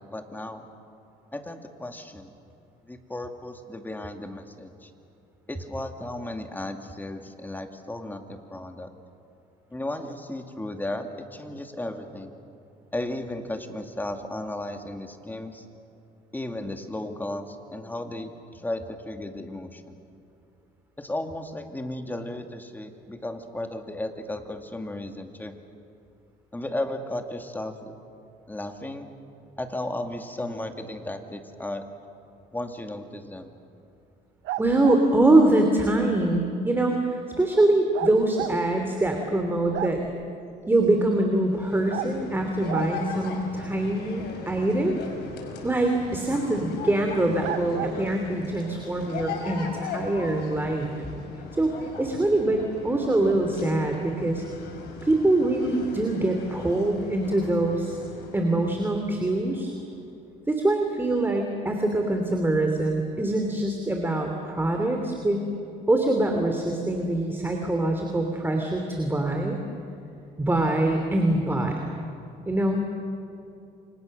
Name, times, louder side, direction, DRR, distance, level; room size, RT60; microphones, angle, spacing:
voice 1, 0.1-0.7 1.3-2.3 2.9-4.9 5.5-8.9 9.7-12.3 12.9-15.7 16.3-20.0 21.0-25.6 26.5-27.9 28.5-29.1 29.6-31.8 32.5-33.5, left 1 dB, 10° left, 5 dB, 2.3 m, -35 dB
sound 1, 34.4-35.0 37.9-38.5 39.0-39.1 39.4-40.2 41.9-42.1 42.7-42.9 46.3-46.4 47.4-48.0, right 14 dB, 80° right, 0.8 m, -32 dB
voice 2, 34.6-40.0 40.7-45.0 45.6-50.9 51.6-54.4 55.0-58.0 58.3-59.7 60.5-65.5 65.9-69.6 70.4-71.9 72.5-72.9, right 2 dB, 10° right, 3 dB, 2.8 m, -24 dB
sound 2, 41.4-59.9, left 4 dB, 80° left, 5.5 m, -39 dB
29.0 x 25.5 x 6.6 m, 2.7 s
cardioid pair, 110°, 17 cm